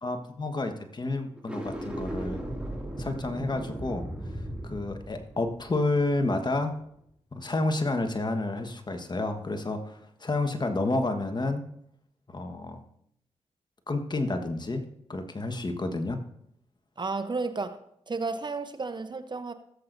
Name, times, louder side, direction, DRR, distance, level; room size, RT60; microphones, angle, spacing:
voice 1, 0.0-2.4 3.0-4.1 4.6-6.8 7.3-11.6 12.3-12.8 13.9-16.2, left 2 dB, 35° left, 1.3 m, -30 dB
sound 1, 1.3-6.6, right 1 dB, 10° right, 2.4 m, -37 dB
voice 2, 17.0-17.8 18.1-19.5, right 3 dB, 35° right, 0.8 m, -32 dB
16.5 x 7.7 x 2.6 m
supercardioid pair, 45°, 12 cm